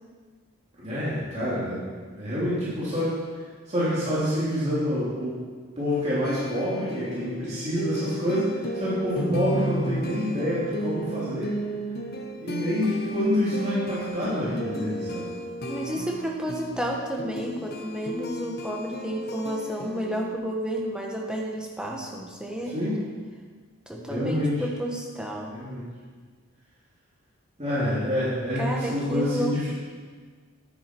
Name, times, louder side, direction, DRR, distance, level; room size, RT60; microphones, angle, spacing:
voice 1, 0.8-1.8 2.1-3.1 3.7-5.3 5.8-11.5 12.4-15.3 22.7-23.0 24.1-24.5 25.5-25.9 27.6-29.7, equal, 30° right, -10 dB, 3.1 m, -27 dB
sound 1, 6.2-20.4, equal, 45° left, 1.0 m, -34 dB
voice 2, 15.7-22.7 23.9-25.5 28.6-29.5, right 1 dB, 5° right, -1 dB, 1.2 m, -31 dB
10.5 x 9.6 x 4.7 m, 1.5 s
head